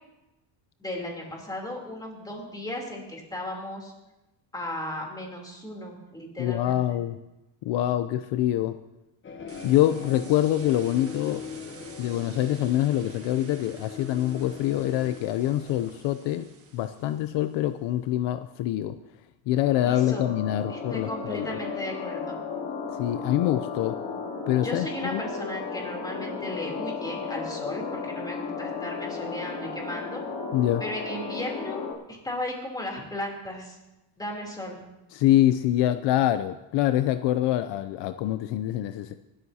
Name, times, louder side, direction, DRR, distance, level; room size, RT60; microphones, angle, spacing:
voice 1, 0.8-3.9 4.5-7.0 19.8-20.3 20.7-22.4 24.6-30.2 30.8-33.8 34.2-34.8, left 1 dB, 10° left, -1 dB, 3.3 m, -35 dB
voice 2, 6.4-7.2 7.6-8.8 9.6-11.5 12.0-19.0 19.5-21.5 23.0-24.0 24.5-25.2 30.5-30.8 35.1-39.2, left 13 dB, 65° left, 11 dB, 0.7 m, -25 dB
sound 1, 9.2-16.0, left 6 dB, 25° left, 1.0 m, -41 dB
sound 2, 9.5-17.7, right 5 dB, 30° right, 1.6 m, -50 dB
sound 3, 19.6-31.9, left 5 dB, 45° left, 3.2 m, -34 dB
25.5 x 13.0 x 2.8 m, 0.98 s
cardioid pair, 150°, 46 cm